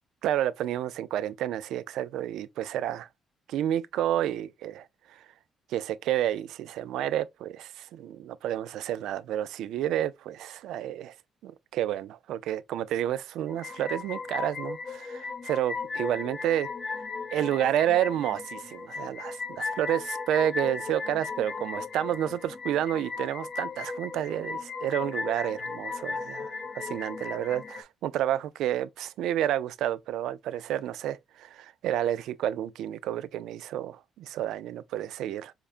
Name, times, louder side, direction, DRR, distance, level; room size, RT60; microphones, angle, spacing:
voice 1, 0.2-3.1 3.5-5.2 5.7-11.1 11.4-16.7 17.3-35.5, right 11 dB, 85° right, 0.3 m, -30 dB
sound 1, 13.5-27.8, left 4 dB, 35° left, 0.6 m, -36 dB
4.8 x 2.2 x 2.4 m
cardioid pair, 90°, 0 cm